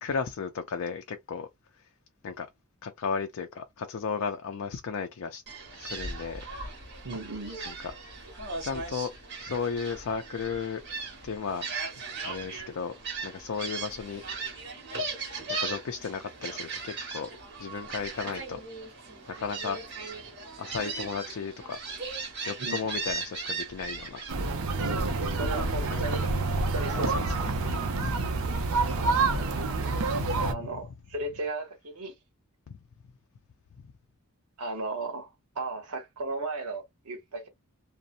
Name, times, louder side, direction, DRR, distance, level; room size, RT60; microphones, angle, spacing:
voice 1, 0.0-1.5 2.2-2.5 2.8-5.4 5.8-6.5 7.7-7.9 8.6-9.1 9.4-10.8 11.2-11.7 12.2-12.9 13.2-14.4 15.5-17.3 17.6-18.6 19.3-19.8 20.6-21.8 22.5-24.2 25.9-26.1 26.9-27.2 28.0-28.3 30.1-30.5, left 5 dB, 65° left, 0.4 m, -34 dB
Gull seagull, 5.5-24.5, right 3 dB, 50° right, 1.2 m, -38 dB
voice 2, 7.0-7.6 22.6-22.8 24.8-27.5 29.3-29.7 30.3-32.1 34.6-35.3 35.6-37.5, right 2 dB, 90° right, 0.9 m, -36 dB
sound 1, 24.3-30.5, right 3 dB, 70° right, 0.6 m, -28 dB
2.6 x 2.0 x 2.5 m
head